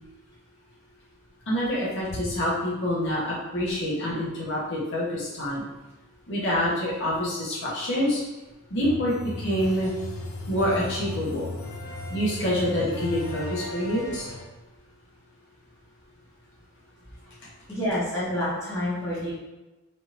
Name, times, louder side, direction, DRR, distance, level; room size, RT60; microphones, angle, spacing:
voice 1, 1.5-5.6 6.3-8.2 8.7-9.9 10.5-11.5 12.1-14.3, equal, 55° left, -7 dB, 0.9 m, -26 dB
sound 1, 8.8-14.4, left 2 dB, 70° left, 0.5 m, -36 dB
voice 2, 17.7-19.3, equal, 15° left, -10 dB, 1.0 m, -28 dB
3.6 x 2.7 x 2.5 m, 1.1 s
head